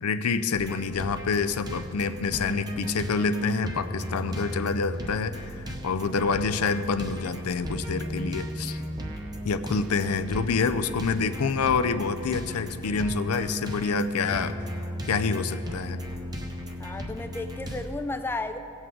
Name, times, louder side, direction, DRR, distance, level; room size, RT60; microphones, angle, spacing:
voice 1, 0.0-5.5 5.8-8.8 9.4-14.5 15.1-16.0, left 5 dB, 90° left, 11 dB, 0.5 m, -27 dB
sound 1, 0.5-17.9, equal, 20° right, 0.8 m, -35 dB
voice 2, 16.8-18.6, left 2 dB, 10° left, 8 dB, 0.3 m, -33 dB
17.0 x 7.9 x 3.7 m, 2.7 s
head